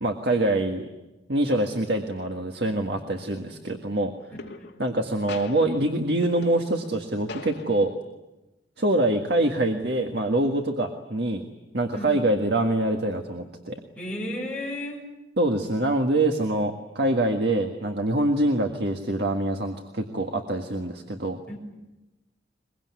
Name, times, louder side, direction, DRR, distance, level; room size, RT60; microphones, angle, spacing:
voice 1, 0.0-0.9 1.3-4.1 4.8-7.9 8.8-11.4 11.7-13.8 15.4-21.4, right 1 dB, 60° right, 3 dB, 1.7 m, -25 dB
sound 1, 3.1-3.5 4.4-5.0 5.3-7.0 7.3-8.0, left 3 dB, 65° left, 2.1 m, -41 dB
voice 2, 14.0-15.0 21.5-21.6, left 1 dB, 10° left, -2 dB, 6.5 m, -33 dB
23.0 x 23.0 x 9.6 m, 1.0 s
head